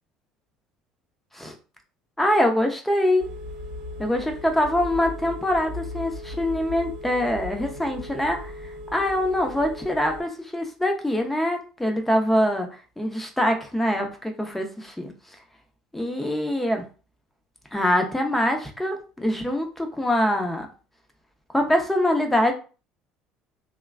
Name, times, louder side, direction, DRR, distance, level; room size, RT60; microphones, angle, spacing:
voice 1, 2.2-3.2 4.0-15.1 15.9-16.8 17.7-20.7 21.5-22.5, left 1 dB, 5° left, 3 dB, 0.8 m, -24 dB
Telephone, 3.2-10.2, left 1 dB, 65° right, 0.8 m, -37 dB
3.0 x 2.2 x 2.4 m, 0.35 s
hypercardioid pair, 70°, 2 cm